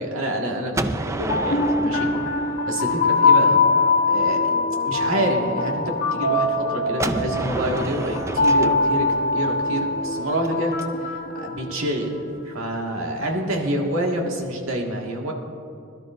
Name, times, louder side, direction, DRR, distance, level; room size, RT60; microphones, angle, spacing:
voice 1, 0.0-2.1 2.7-3.6 4.1-4.4 4.8-9.1 9.3-12.1 12.4-15.3, right 1 dB, 80° right, 0 dB, 1.8 m, -27 dB
Gunshot gunfire, 0.7-3.6 7.0-10.8, right 2 dB, 15° right, 0.3 m, -30 dB
sound 1, 1.1-12.2, left 3 dB, 45° left, 0.9 m, -22 dB
22.0 x 12.0 x 2.6 m, 2.5 s
head